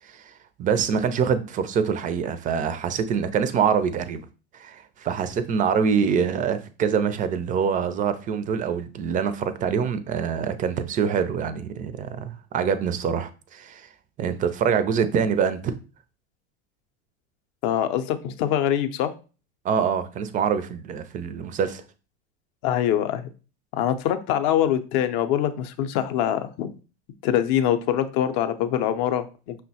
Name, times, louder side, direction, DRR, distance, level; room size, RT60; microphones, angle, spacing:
voice 1, 0.0-4.3 4.5-13.9 14.2-15.8 19.6-21.8, right 7 dB, 25° right, 0.3 m, -25 dB
voice 2, 17.6-19.1 22.6-23.3 23.7-26.7 27.2-29.6, left 10 dB, 55° left, 0.5 m, -24 dB
5.4 x 2.1 x 2.7 m
hypercardioid pair, 90°, 33 cm